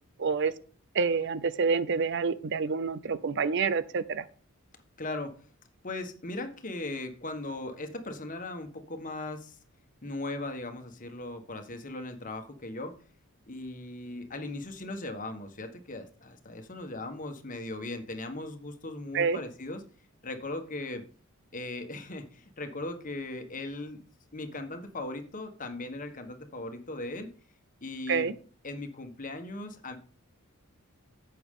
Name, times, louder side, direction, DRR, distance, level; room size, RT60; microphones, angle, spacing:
voice 1, 0.2-0.5 0.9-4.2 19.1-19.4 28.1-28.3, right 5 dB, 55° right, 15 dB, 0.6 m, -27 dB
voice 2, 5.0-5.3 5.8-9.6 10.0-12.9 13.5-19.8 20.2-21.0 21.5-24.0 24.3-27.3 27.8-28.3 28.6-30.0, left 2 dB, 35° left, 7 dB, 1.4 m, -38 dB
11.5 x 7.9 x 3.7 m, 0.41 s
head